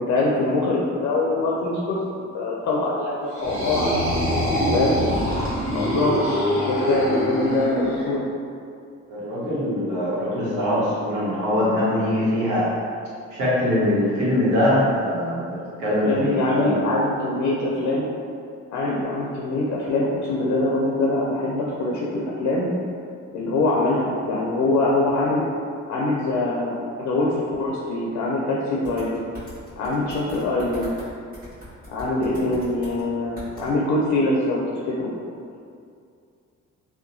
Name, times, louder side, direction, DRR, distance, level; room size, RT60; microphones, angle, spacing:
voice 1, 0.0-2.0 2.3-3.9 4.7-5.1 5.7-8.2 16.0-18.1 18.7-22.7 23.3-25.4 25.9-29.2 29.8-30.9 31.9-35.2, left 2 dB, 65° left, -4 dB, 0.5 m, -23 dB
sound 1, 3.3-8.1, equal, 45° right, 1.2 m, -24 dB
voice 2, 9.1-12.7 13.3-16.8, left 1 dB, 75° right, -8 dB, 1.0 m, -22 dB
sound 2, 28.8-31.1 31.3-33.0 33.4-33.7, equal, 30° right, 1.4 m, -41 dB
2.7 x 2.2 x 2.6 m, 2.3 s
cardioid pair, 90°, 30 cm